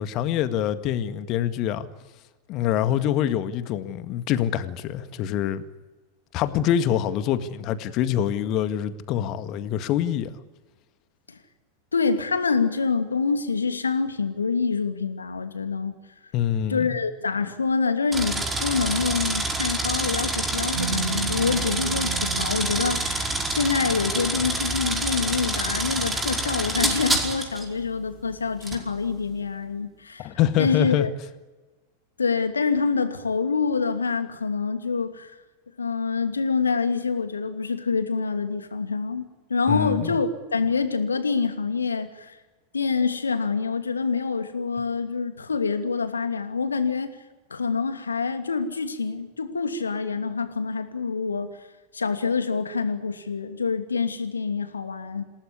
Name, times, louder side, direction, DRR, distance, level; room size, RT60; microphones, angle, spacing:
voice 1, 0.0-1.9 2.5-5.6 6.3-10.3 16.3-16.9 30.2-31.1 39.7-40.2, left 10 dB, 40° left, 1.9 m, -25 dB
voice 2, 11.9-16.0 16.7-30.3 30.6-31.1 32.2-35.3 35.8-39.2 39.5-42.4 42.7-47.2 47.5-51.5 51.9-55.2, left 5 dB, 75° left, 2.6 m, -26 dB
sound 1, 18.1-27.6 28.6-28.8, right 2 dB, 10° right, 5.0 m, -27 dB
sound 2, 20.7-24.6, right 8 dB, 65° right, 2.3 m, -35 dB
28.0 x 18.0 x 9.9 m
figure-of-eight pair, 90°, 0 cm